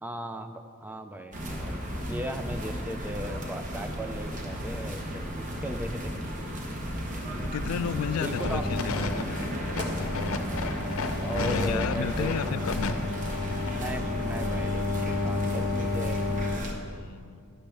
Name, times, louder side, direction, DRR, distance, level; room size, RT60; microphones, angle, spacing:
voice 1, 0.0-6.1 7.4-7.7 8.2-8.6 11.2-12.5 13.7-16.2, right 1 dB, 10° right, 8 dB, 0.4 m, -37 dB
sound 1, 1.3-16.7, equal, 35° right, 1.2 m, -34 dB
sound 2, 5.4-15.6, right 1 dB, 80° right, 1.8 m, -46 dB
voice 2, 7.4-9.6 11.4-13.2 16.9-17.4, left 8 dB, 85° left, 17 dB, 0.3 m, -33 dB
sound 3, 8.2-16.6, left 3 dB, 65° left, 0.7 m, -31 dB
11.5 x 11.0 x 3.4 m, 2.3 s
head